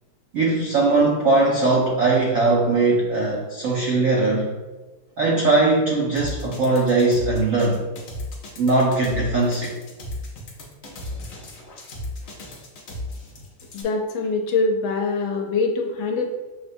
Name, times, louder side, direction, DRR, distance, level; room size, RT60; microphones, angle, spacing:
voice 1, 0.3-4.5 5.2-7.8 8.6-9.7, right 3 dB, 90° right, -3 dB, 0.7 m, -20 dB
sound 1, 6.2-13.8, left 1 dB, 60° left, 0.9 m, -35 dB
voice 2, 13.7-16.3, left 3 dB, 85° left, 3 dB, 1.4 m, -23 dB
6.2 x 2.1 x 2.6 m, 1.2 s
omnidirectional pair, 2.1 m